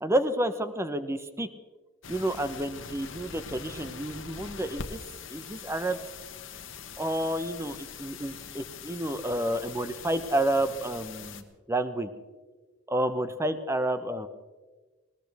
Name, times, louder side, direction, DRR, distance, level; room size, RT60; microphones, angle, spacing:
voice 1, 0.0-1.5 2.1-5.0 5.3-6.0 7.0-12.1 12.9-14.3, right 1 dB, 15° right, 10 dB, 0.9 m, -30 dB
sound 1, 2.0-11.4, left 6 dB, 70° left, 1.2 m, -43 dB
20.0 x 18.5 x 3.5 m, 1.3 s
head